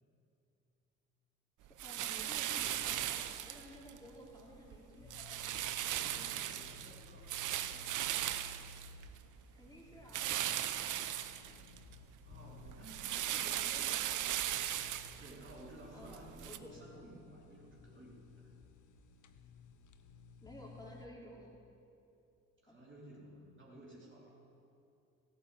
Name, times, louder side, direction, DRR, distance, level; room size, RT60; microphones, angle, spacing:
voice 1, 1.6-5.5 9.5-10.5 13.2-14.4 15.9-16.7 20.4-21.5 22.7-22.8, equal, 10° left, -4 dB, 3.6 m, -54 dB
sound 1, 1.8-4.0 4.4-4.8 5.1-9.4 10.1-12.0 12.3-16.6, right 12 dB, 50° right, 0.7 m, -38 dB
sound 2, 2.6-21.1, left 3 dB, 50° left, 1.0 m, -57 dB
voice 2, 5.9-8.1 12.2-14.1 15.2-18.5 22.6-24.4, right 1 dB, 30° right, -4 dB, 3.6 m, -55 dB
16.5 x 7.7 x 7.6 m, 2.7 s
figure-of-eight pair, 45°, 39 cm